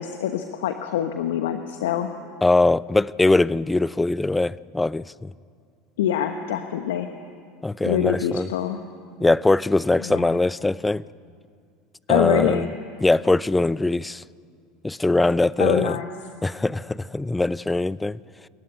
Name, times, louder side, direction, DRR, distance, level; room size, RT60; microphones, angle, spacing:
voice 1, 0.0-2.1 6.0-7.1 7.8-8.8 10.0-10.4 12.1-12.7 15.6-16.1, left 10 dB, 75° left, 1.1 m, -25 dB
voice 2, 2.4-5.3 7.6-8.5 9.2-11.0 12.1-12.7 13.0-14.2 14.8-16.0 16.4-18.2, left 2 dB, 10° left, 0.5 m, -21 dB
28.0 x 14.5 x 9.9 m
hypercardioid pair, 80°, 0 cm